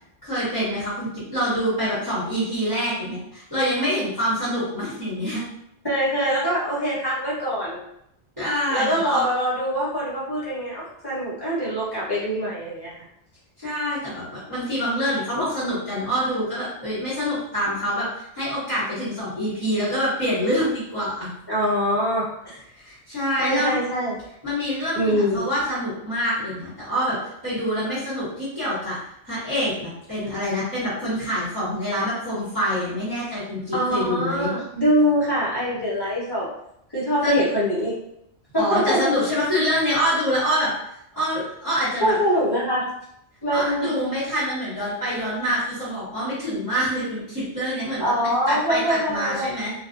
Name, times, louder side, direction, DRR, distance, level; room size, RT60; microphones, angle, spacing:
voice 1, 0.2-5.4 8.4-9.2 13.6-21.3 22.7-23.8 24.4-27.1 27.4-29.0 29.2-34.5 37.2-37.4 38.6-40.7 41.1-42.1 43.5-49.7, equal, 15° right, -14 dB, 1.2 m, -26 dB
voice 2, 5.8-7.8 8.7-12.9 21.5-22.2 22.5-22.6 23.4-24.2 24.9-25.5 33.7-36.5 36.9-37.9 38.5-39.0 42.0-42.9 43.4-43.9 48.0-49.5, equal, 20° left, -8 dB, 1.0 m, -23 dB
2.6 x 2.4 x 2.5 m, 0.76 s
omnidirectional pair, 1.2 m